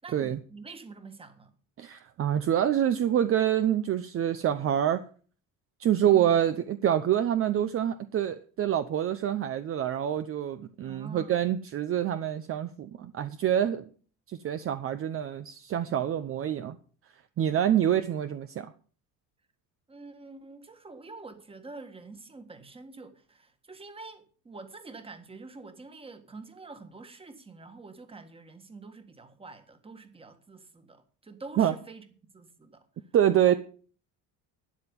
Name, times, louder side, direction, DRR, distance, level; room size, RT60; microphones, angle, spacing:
voice 1, 0.0-1.5 6.0-6.4 10.8-11.5 17.5-18.1 19.9-32.0 32.3-33.0 33.5-33.6, right 3 dB, 15° right, 1.7 m, -46 dB
voice 2, 1.8-5.0 5.8-13.9 14.3-16.8 17.4-18.7 31.6-31.7 33.1-33.5, right 10 dB, 40° right, 0.8 m, -26 dB
13.0 x 9.8 x 5.3 m
cardioid pair, 155°, 34 cm